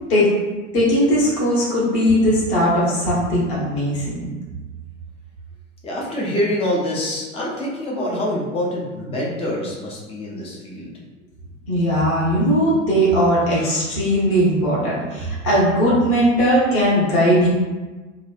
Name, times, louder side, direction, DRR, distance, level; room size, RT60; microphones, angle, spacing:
voice 1, 0.7-4.3 11.7-17.5, equal, 35° left, -7 dB, 1.2 m, -18 dB
voice 2, 5.8-10.9, left 1 dB, 15° left, -4 dB, 0.5 m, -25 dB
3.1 x 2.2 x 2.3 m, 1.2 s
figure-of-eight pair, 90°, 38 cm